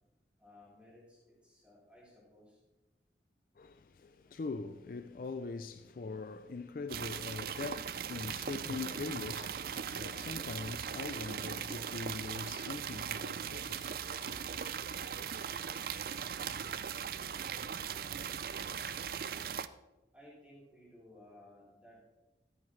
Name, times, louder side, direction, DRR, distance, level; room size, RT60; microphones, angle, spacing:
voice 1, 0.4-2.6 20.1-22.0, left 1 dB, 5° right, 3.9 m, -58 dB
voice 2, 3.6-14.6, left 3 dB, 50° left, 0.4 m, -42 dB
sound 1, 6.9-19.7, right 7 dB, 55° right, 0.4 m, -39 dB
13.5 x 9.8 x 3.2 m
head